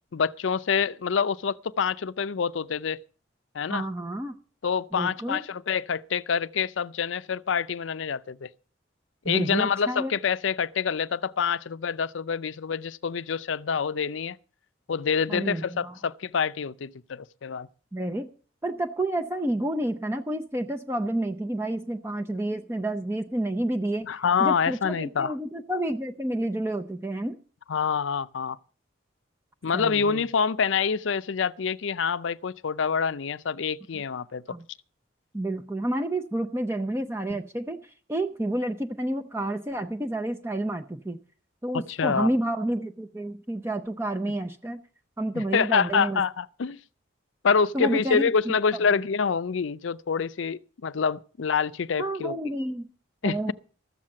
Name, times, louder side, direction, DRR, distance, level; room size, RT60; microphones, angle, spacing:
voice 1, 0.1-3.0 3.5-3.8 4.6-8.5 9.3-14.4 14.9-17.7 24.0-25.4 27.7-28.6 29.6-34.6 41.9-42.3 45.4-46.8 47.4-52.4 53.2-53.5, left 6 dB, 80° left, 0.5 m, -26 dB
voice 2, 3.7-4.4 4.9-5.4 9.2-10.1 15.3-16.0 17.9-18.3 18.6-24.1 24.4-27.4 29.7-30.2 34.5-34.6 35.3-37.8 38.1-41.2 41.6-44.8 45.2-46.2 47.7-48.5 52.0-52.9 53.2-53.5, right 1 dB, 15° right, 0.6 m, -29 dB
13.5 x 7.4 x 7.6 m
head